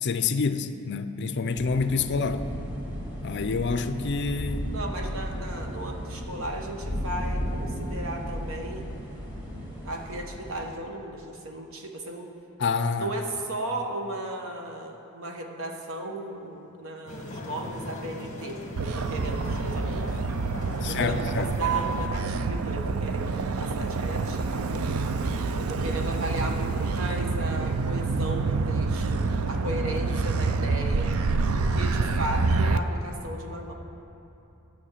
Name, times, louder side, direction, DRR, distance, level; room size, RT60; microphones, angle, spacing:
voice 1, 0.0-2.4 3.2-4.7 12.6-13.1 20.8-21.5, left 4 dB, 55° left, 10 dB, 0.5 m, -27 dB
sound 1, 1.5-10.7, equal, 10° right, 3.0 m, -34 dB
voice 2, 4.7-8.8 9.8-12.3 13.0-20.1 20.8-24.9 25.5-31.1 31.5-33.7, right 1 dB, 70° right, 2 dB, 1.2 m, -36 dB
sound 2, 17.1-22.1, left 1 dB, 35° left, 1.4 m, -39 dB
Motor vehicle (road), 18.8-32.8, right 3 dB, 85° right, 0.5 m, -27 dB
12.0 x 6.4 x 8.3 m, 2.9 s
head